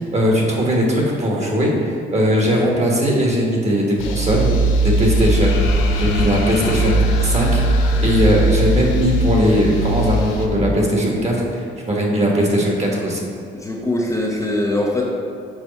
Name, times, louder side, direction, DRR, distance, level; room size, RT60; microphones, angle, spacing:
voice 1, 0.0-4.5 4.8-7.6 8.0-13.2, equal, 35° right, -2 dB, 1.6 m, -19 dB
sound 1, 4.0-10.5, right 1 dB, 90° left, 0.7 m, -19 dB
voice 2, 13.5-15.1, left 1 dB, 15° left, -2 dB, 0.8 m, -22 dB
6.4 x 4.6 x 4.2 m, 2.4 s
cardioid pair, 90°, 20 cm